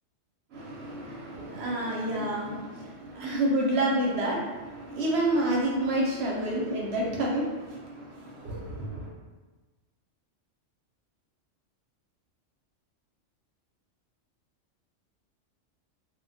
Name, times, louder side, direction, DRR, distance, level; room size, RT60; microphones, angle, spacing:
voice 1, 0.5-9.1, right 1 dB, 65° right, -3 dB, 0.8 m, -29 dB
2.3 x 2.1 x 3.9 m, 1.3 s
omnidirectional pair, 1.3 m